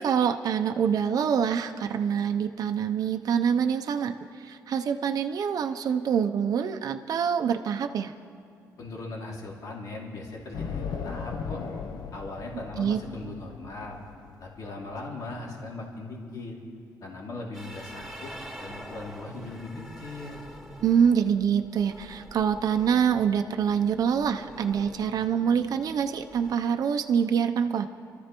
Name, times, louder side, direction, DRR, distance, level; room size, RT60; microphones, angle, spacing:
voice 1, 0.0-8.1 12.8-13.0 20.8-27.9, right 7 dB, 65° right, 6 dB, 0.6 m, -25 dB
voice 2, 8.8-11.6 12.1-14.0 14.4-16.6 17.0-18.3 18.6-20.4, left 2 dB, 65° left, -2 dB, 2.5 m, -39 dB
sound 1, 10.5-15.4, left 5 dB, 80° left, 0.7 m, -37 dB
sound 2, 17.5-26.6, right 1 dB, ahead, 2.7 m, -46 dB
25.5 x 13.5 x 3.0 m, 2.3 s
cardioid pair, 65°, 7 cm